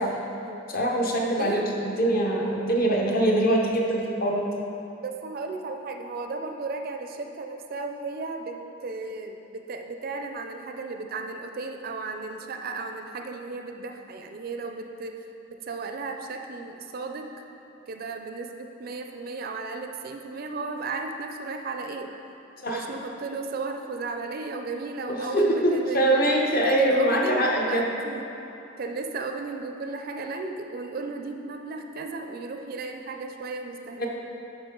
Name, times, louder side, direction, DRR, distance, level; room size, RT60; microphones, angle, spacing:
voice 1, 0.0-0.6 1.4-1.7 5.0-15.2 15.5-17.3 17.9-22.1 22.7-26.3 26.6-28.2 28.8-34.1, right 3 dB, 45° right, 5 dB, 0.4 m, -34 dB
voice 2, 0.7-4.5 22.6-22.8 25.1-27.9 34.0-34.1, right 1 dB, 45° left, -1 dB, 0.9 m, -23 dB
11.0 x 4.4 x 3.7 m, 3.0 s
head